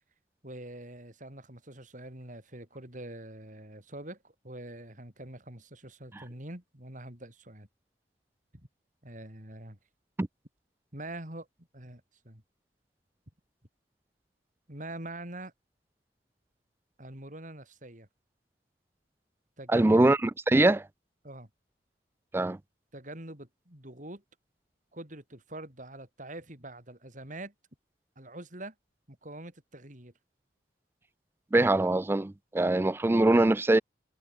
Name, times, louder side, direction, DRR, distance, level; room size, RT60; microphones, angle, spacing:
voice 1, 0.4-7.7 9.0-9.8 10.9-11.5 11.7-12.4 14.7-15.5 17.0-18.1 19.6-20.0 21.2-21.5 22.4-22.5 22.9-24.2 24.9-27.5 28.2-28.7 29.1-30.1, right 1 dB, 45° right, 5.3 m, -44 dB
voice 2, 19.7-20.2 20.5-20.8 22.3-22.6 31.5-33.8, right 2 dB, 15° right, 0.3 m, -22 dB
head